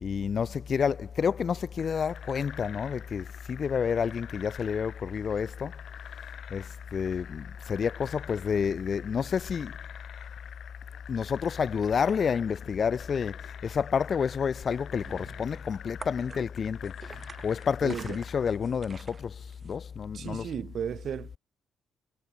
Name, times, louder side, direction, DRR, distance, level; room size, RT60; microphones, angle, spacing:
voice 1, 0.0-5.7 6.5-9.8 11.1-16.9 17.4-20.5, left 6 dB, 45° left, 0.4 m, -29 dB
sound 1, 1.8-18.6, left 9 dB, 65° left, 4.0 m, -47 dB
sound 2, 14.7-19.8, right 4 dB, 35° right, 2.9 m, -48 dB
voice 2, 17.8-18.2 20.1-21.4, right 8 dB, 60° right, 0.9 m, -35 dB
cardioid pair, 90°, 0 cm